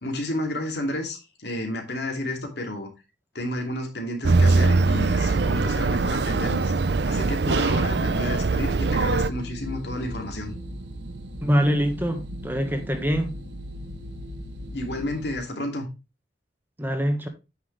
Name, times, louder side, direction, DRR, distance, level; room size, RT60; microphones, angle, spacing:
voice 1, 0.0-2.9 3.3-6.7 7.1-10.5 14.7-15.9, left 1 dB, 65° left, 2.7 m, -31 dB
sound 1, 4.2-9.3, right 3 dB, 65° right, 0.6 m, -22 dB
sound 2, 9.0-15.3, equal, 85° right, 1.2 m, -37 dB
voice 2, 11.4-13.3 16.8-17.3, equal, 10° right, 1.4 m, -24 dB
9.5 x 6.2 x 3.3 m
head